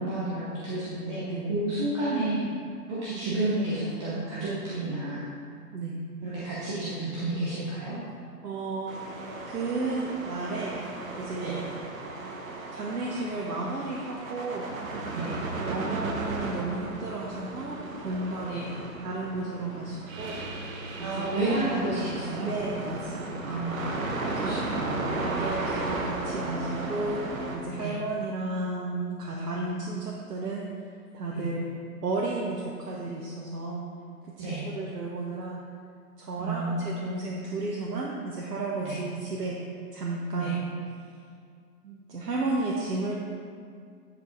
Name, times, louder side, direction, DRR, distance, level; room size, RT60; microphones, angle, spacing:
voice 1, 0.0-2.5 2.9-5.3 6.2-8.0 11.4-11.6 15.1-15.3 18.4-18.6 21.0-22.5 23.4-23.8 24.4-25.5 27.8-27.9 31.3-31.5 34.4-34.7 36.4-36.9 38.8-39.0 40.4-40.6, right 2 dB, 20° right, -9 dB, 0.9 m, -31 dB
voice 2, 8.4-9.0 9.4-10.8 11.2-11.6 12.7-14.7 15.5-18.7 19.0-20.4 21.0-21.9 22.4-23.4 24.0-24.6 25.1-30.7 31.1-31.7 32.0-33.9 34.2-35.6 36.2-39.6 39.9-40.7 41.8-43.2, right 3 dB, 80° right, -3 dB, 1.2 m, -33 dB
sound 1, 8.9-27.6, right 2 dB, 55° right, 1.3 m, -35 dB
10.0 x 4.8 x 3.9 m, 2.2 s
hypercardioid pair, 145°, 47 cm